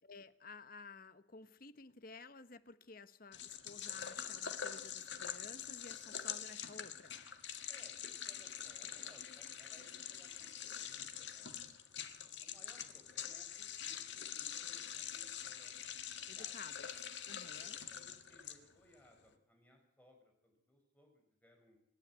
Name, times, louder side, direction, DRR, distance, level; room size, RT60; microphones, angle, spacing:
voice 1, 0.0-7.2 16.2-17.8, left 4 dB, 45° left, 13 dB, 1.1 m, -54 dB
sound 1, 3.3-18.9, left 9 dB, 65° left, 1.8 m, -45 dB
voice 2, 7.7-11.5 12.2-15.8 16.3-16.5 17.6-21.8, equal, 10° left, 2 dB, 5.1 m, -66 dB
26.5 x 11.5 x 9.5 m, 0.74 s
head